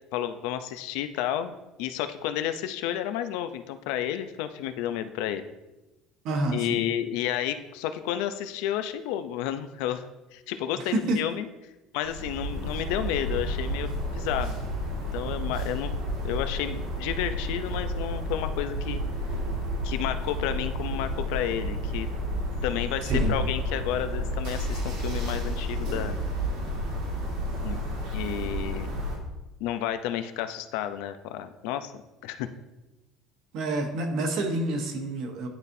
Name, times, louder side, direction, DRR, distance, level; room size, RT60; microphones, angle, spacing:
voice 1, 0.1-5.4 6.5-10.0 10.3-11.5 11.9-14.6 15.1-15.9 16.2-19.0 19.8-22.1 22.6-26.2 27.6-27.8 28.1-28.9 29.6-31.9 32.2-32.5, left 11 dB, 80° left, 10 dB, 0.5 m, -31 dB
voice 2, 6.2-6.8 10.8-11.2 23.0-23.4 33.5-35.5, right 2 dB, 55° right, 4 dB, 1.0 m, -28 dB
sound 1, 12.0-29.2, equal, 80° right, 2.0 m, -31 dB
10.5 x 4.1 x 2.7 m, 1.0 s
cardioid pair, 160°, 0 cm